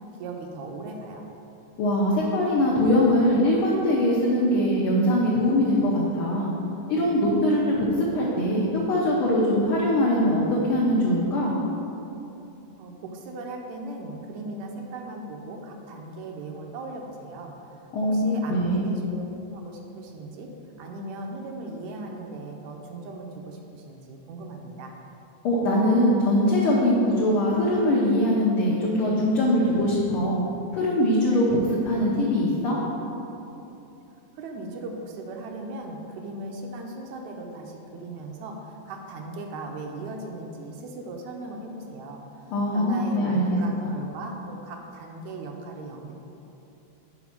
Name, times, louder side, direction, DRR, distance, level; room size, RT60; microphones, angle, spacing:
voice 1, 0.2-1.3 12.8-17.5 18.0-19.3 19.5-20.5 20.8-24.9 34.3-46.1, right 2 dB, 80° right, 2 dB, 2.0 m, -38 dB
voice 2, 1.8-6.5 6.9-10.4 10.7-11.5 17.9-18.2 18.5-18.8 25.4-30.4 30.7-32.8 42.5-43.4, left 1 dB, 75° left, -5 dB, 1.3 m, -22 dB
6.1 x 4.2 x 5.8 m, 2.9 s
omnidirectional pair, 3.3 m